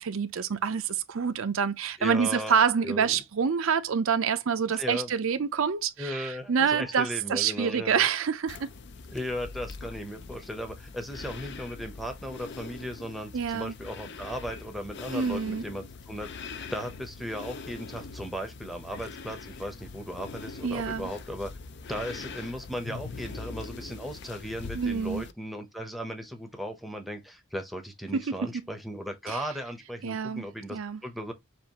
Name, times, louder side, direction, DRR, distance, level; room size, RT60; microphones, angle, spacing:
voice 1, 0.0-8.7 13.3-13.7 15.1-15.6 20.6-21.1 24.7-25.2 28.1-28.6 29.3-29.4 30.0-31.0, right 6 dB, 65° right, 0.5 m, -27 dB
voice 2, 2.0-3.2 4.7-5.1 6.0-8.1 9.1-21.5 21.9-31.3, equal, ahead, 0.8 m, -37 dB
sound 1, 8.5-25.3, left 4 dB, 50° left, 0.5 m, -42 dB
7.0 x 2.5 x 2.9 m
head